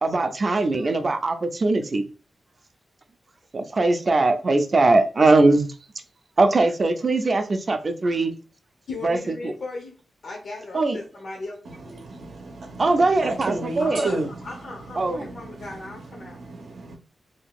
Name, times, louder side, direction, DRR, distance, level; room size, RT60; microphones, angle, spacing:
voice 1, 0.0-2.0 3.5-5.7 6.4-8.3 9.0-9.5 10.7-11.0 12.8-14.1 15.0-15.3, right 2 dB, 35° right, 0.4 m, -21 dB
voice 2, 8.9-10.0 10.2-12.0 13.8-16.4, left 3 dB, 60° left, 0.6 m, -37 dB
voice 3, 11.7-14.6 15.0-17.0, right 2 dB, 85° right, 0.6 m, -33 dB
2.7 x 2.3 x 3.6 m
wide cardioid pair, 165°, 0 cm